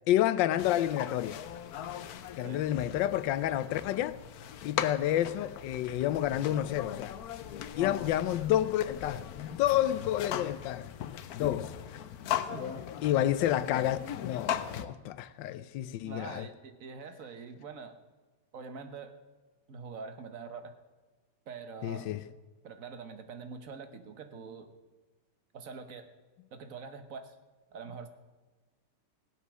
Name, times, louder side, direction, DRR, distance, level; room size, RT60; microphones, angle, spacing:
voice 1, 0.1-1.4 2.4-4.2 4.6-7.2 7.7-10.9 11.3-11.7 13.0-16.5 21.8-22.2, left 12 dB, 85° left, 1.3 m, -29 dB
sound 1, 0.6-14.9, left 10 dB, 65° left, 1.0 m, -39 dB
voice 2, 12.5-12.9 16.0-18.0 18.5-19.1 19.7-20.7 21.5-22.3 22.6-24.7 25.5-26.1 26.5-27.3 27.7-28.1, right 5 dB, 50° right, 1.4 m, -44 dB
18.5 x 8.3 x 6.2 m
omnidirectional pair, 2.0 m